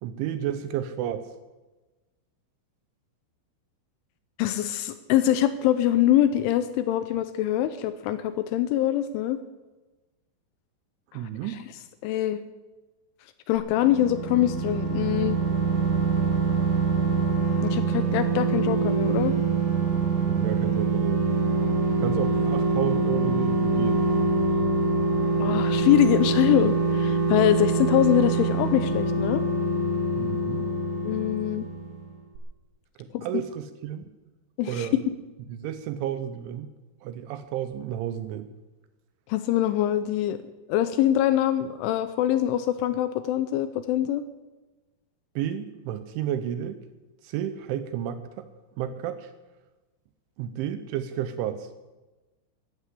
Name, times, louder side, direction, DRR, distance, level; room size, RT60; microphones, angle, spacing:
voice 1, 0.0-1.3 11.1-11.6 20.3-21.2 22.0-24.1 30.2-30.7 33.0-34.2 34.6-35.0 35.5-36.7 37.0-38.5 45.4-46.8 47.2-48.5 48.8-49.3 50.4-51.7, right 10 dB, 80° right, 11 dB, 2.9 m, -31 dB
voice 2, 4.4-9.4 11.1-11.2 12.0-12.4 13.5-15.4 17.6-19.3 25.4-29.4 31.0-31.7 33.1-33.3 34.6-35.0 39.3-40.4 40.7-44.2, left 12 dB, 80° left, 11 dB, 2.9 m, -24 dB
sound 1, 13.6-32.1 32.4-32.5, right 3 dB, 60° right, 4.7 m, -25 dB
13.5 x 12.0 x 8.3 m, 1.2 s
omnidirectional pair, 6.0 m